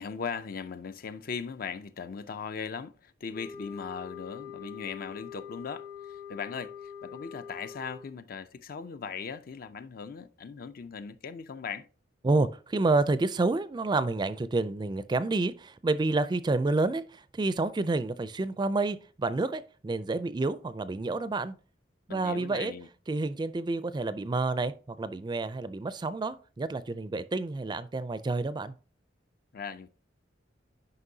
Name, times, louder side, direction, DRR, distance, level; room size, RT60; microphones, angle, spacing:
voice 1, 0.0-11.9 22.1-22.9 29.5-29.9, left 6 dB, 55° left, 0.4 m, -39 dB
sound 1, 3.3-8.2, left 7 dB, 85° left, 2.8 m, -44 dB
voice 2, 12.2-21.6 22.1-22.7 23.1-28.7, right 3 dB, 25° right, 0.4 m, -29 dB
9.7 x 5.3 x 2.7 m
head